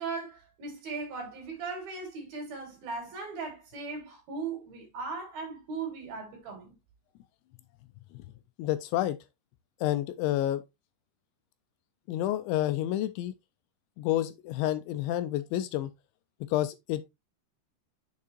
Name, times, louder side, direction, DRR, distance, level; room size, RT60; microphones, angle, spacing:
voice 1, 0.0-6.8, right 4 dB, 55° right, 3.9 m, -38 dB
voice 2, 8.6-9.2 9.8-10.6 12.1-13.3 14.0-15.9 16.5-17.0, left 13 dB, 80° left, 2.8 m, -29 dB
7.5 x 6.0 x 2.9 m
omnidirectional pair, 5.4 m